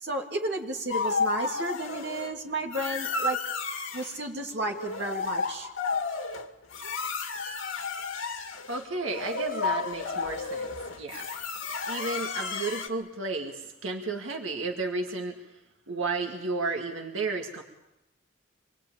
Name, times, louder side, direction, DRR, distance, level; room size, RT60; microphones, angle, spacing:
voice 1, 0.0-3.4 3.9-5.7, right 1 dB, 55° right, 1 dB, 3.0 m, -32 dB
sound 1, 0.9-2.3 2.7-4.2 4.6-12.9, left 4 dB, 75° left, 2.2 m, -32 dB
voice 2, 8.7-11.5 11.9-15.3 15.9-17.6, right 3 dB, 80° right, 2 dB, 2.1 m, -33 dB
26.5 x 21.0 x 8.8 m, 0.91 s
head